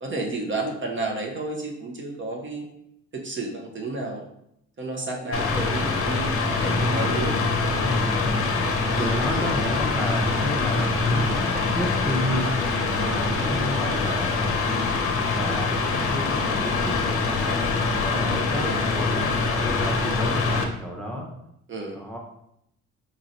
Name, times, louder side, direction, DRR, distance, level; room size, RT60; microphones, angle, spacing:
voice 1, 0.0-2.7 3.1-4.2 4.8-7.3 8.9-9.4 12.9-13.5 15.8-16.1 18.6-19.1 21.7-22.1, right 2 dB, 40° right, 1 dB, 0.7 m, -32 dB
Mechanical fan, 5.3-20.6, left 3 dB, 45° left, 0.6 m, -24 dB
voice 2, 7.7-12.6 13.1-14.5 15.3-17.2 18.0-19.3 19.6-21.3 21.9-22.2, equal, 5° left, -1 dB, 0.7 m, -31 dB
4.0 x 3.0 x 2.6 m, 0.77 s
cardioid pair, 90°, 30 cm